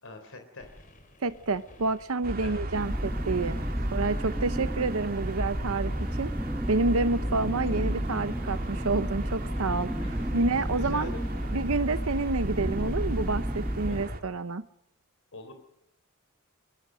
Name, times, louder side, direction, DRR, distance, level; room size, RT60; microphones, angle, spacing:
voice 1, 0.0-0.7 2.4-2.6 10.0-10.2 10.7-11.6 13.9-14.1 15.3-15.5, left 3 dB, 65° left, 6 dB, 3.7 m, -44 dB
sound 1, 0.6-13.4, left 1 dB, 40° left, 4.2 m, -53 dB
voice 2, 1.2-3.6 3.9-5.9 6.2-6.3 6.7-9.9 10.3-11.1 11.5-14.6, right 3 dB, 70° right, 12 dB, 0.8 m, -28 dB
sound 2, 2.2-14.2, right 1 dB, 45° right, 2.9 m, -36 dB
sound 3, 2.7-14.0, equal, 5° right, 1.4 m, -32 dB
23.5 x 22.5 x 6.4 m, 0.78 s
head